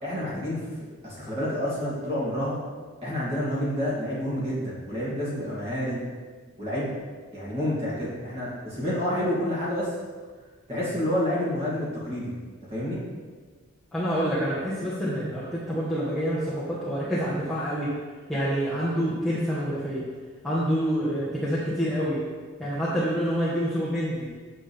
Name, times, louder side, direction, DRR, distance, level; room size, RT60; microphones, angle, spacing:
voice 1, 0.0-0.6 1.0-2.6 3.0-6.0 6.6-6.9 7.3-9.9 10.7-12.3 12.7-13.0, equal, 30° right, -8 dB, 2.5 m, -29 dB
voice 2, 13.9-17.9 18.3-20.0 20.4-22.2 22.6-24.3, equal, ahead, -11 dB, 1.2 m, -27 dB
7.5 x 7.4 x 3.4 m, 1.5 s
head